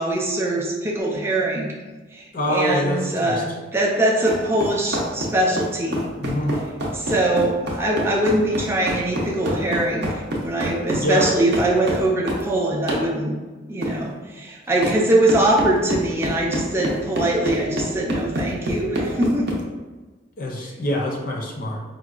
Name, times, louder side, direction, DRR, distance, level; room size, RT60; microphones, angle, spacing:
voice 1, 0.0-1.7 2.1-6.1 6.9-10.1 10.4-13.3 13.7-19.5, right 1 dB, 15° right, -3 dB, 0.4 m, -22 dB
voice 2, 2.3-3.4 6.2-6.6 10.9-11.2 20.4-21.8, equal, 45° left, 0 dB, 0.5 m, -25 dB
sound 1, 4.3-12.5 12.9-13.1 13.8-14.0 14.8-15.0 15.3-19.6, equal, 60° right, 0.6 m, -26 dB
4.6 x 2.1 x 2.4 m, 1.2 s
head